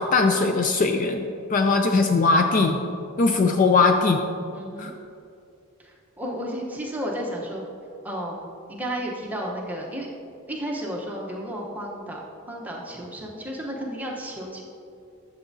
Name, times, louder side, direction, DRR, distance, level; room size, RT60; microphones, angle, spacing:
voice 1, 0.0-2.8 3.2-4.2 4.8-4.9, left 3 dB, 35° left, 5 dB, 0.3 m, -20 dB
voice 2, 4.5-4.9 5.8-7.7 8.0-10.1 10.5-12.2 12.5-14.6, equal, 5° right, -3 dB, 0.9 m, -33 dB
11.5 x 7.1 x 2.7 m, 2.6 s
head